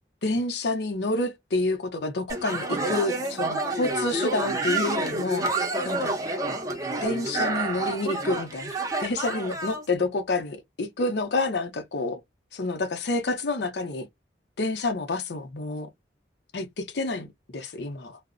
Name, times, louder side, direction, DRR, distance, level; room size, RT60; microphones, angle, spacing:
voice 1, 0.2-6.1 7.0-12.2 12.5-14.1 14.6-15.9 16.5-18.2, left 2 dB, 70° left, 0.6 m, -29 dB
sound 1, 2.3-9.8, right 2 dB, 20° right, 0.6 m, -29 dB
2.5 x 2.0 x 2.5 m
head